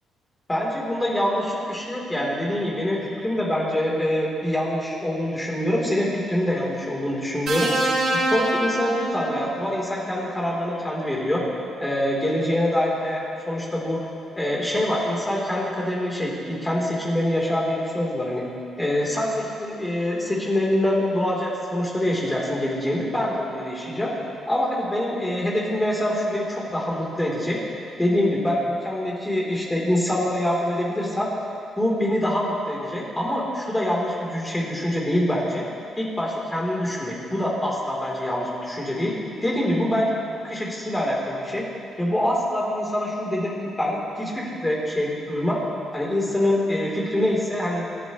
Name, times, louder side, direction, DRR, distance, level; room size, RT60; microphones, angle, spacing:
voice 1, 0.5-7.7 8.1-11.4 11.8-14.1 14.3-18.5 18.8-24.1 24.5-27.6 28.0-31.3 31.8-35.6 36.0-39.1 39.4-41.7 42.0-45.6 45.9-47.9, left 1 dB, 15° left, -4 dB, 3.6 m, -25 dB
sound 1, 7.5-9.7 11.0-11.2, right 2 dB, 55° right, 4.3 m, -25 dB
27.0 x 11.0 x 3.2 m, 2.6 s
cardioid pair, 90°, 0 cm